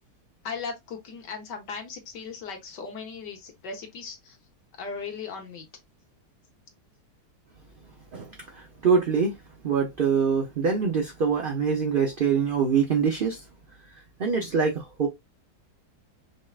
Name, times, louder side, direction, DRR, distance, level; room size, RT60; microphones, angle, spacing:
voice 1, 0.4-4.4 4.7-5.7, left 5 dB, 90° left, 1.8 m, -37 dB
voice 2, 8.1-9.3 9.6-13.4 14.2-15.1, right 6 dB, 50° right, 0.6 m, -24 dB
5.4 x 3.5 x 2.4 m
omnidirectional pair, 1.8 m